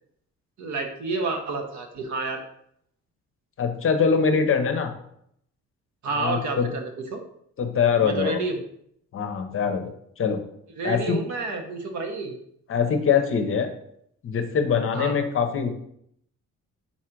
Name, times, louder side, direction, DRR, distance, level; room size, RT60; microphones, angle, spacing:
voice 1, 0.6-2.4 6.0-6.8 7.1-7.2 8.0-8.6 10.8-12.4 14.9-15.2, right 3 dB, 70° right, 4 dB, 0.8 m, -29 dB
voice 2, 3.6-4.9 6.1-6.7 7.6-8.4 9.1-9.9 10.2-10.4 10.8-11.2 12.7-13.7 14.2-15.7, left 6 dB, 45° left, 6 dB, 0.6 m, -23 dB
4.1 x 2.4 x 4.5 m, 0.71 s
cardioid pair, 90°, 30 cm